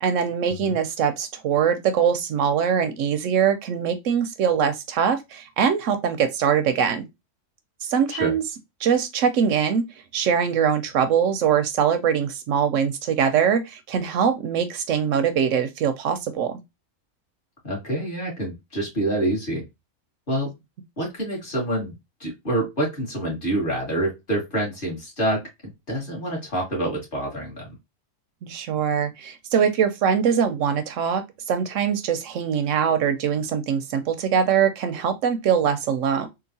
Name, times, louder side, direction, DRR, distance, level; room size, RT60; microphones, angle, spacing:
voice 1, 0.0-7.1 7.8-8.4 8.8-9.8 10.1-16.6 28.4-36.3, right 7 dB, 70° right, 0.8 m, -22 dB
voice 2, 17.6-19.6 20.3-20.5 21.0-21.9 22.2-25.4 25.9-27.7, right 1 dB, 35° left, 1.9 m, -26 dB
3.8 x 2.4 x 2.6 m
omnidirectional pair, 1.5 m